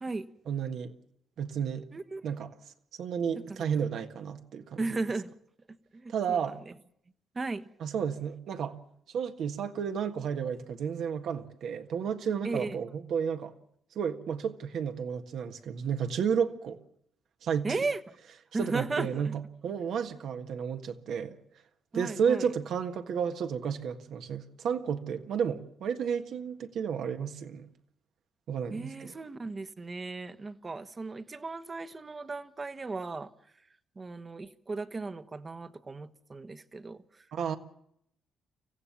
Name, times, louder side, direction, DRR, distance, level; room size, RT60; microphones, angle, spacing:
voice 1, 0.5-0.9 1.4-1.9 2.2-2.5 3.0-4.8 6.1-6.6 7.8-8.8 9.1-13.5 13.9-16.8 17.4-17.8 18.6-21.4 21.9-27.7 28.5-28.9 37.3-37.6, right 7 dB, 70° right, 1.6 m, -32 dB
voice 2, 1.9-2.3 3.5-3.6 4.8-5.3 5.9-6.7 7.3-7.7 12.4-12.8 17.6-18.2 18.5-19.4 21.9-22.5 28.7-33.3 33.9-37.3, right 3 dB, 30° right, 1.2 m, -36 dB
24.5 x 15.5 x 7.1 m
supercardioid pair, 65°, 0 cm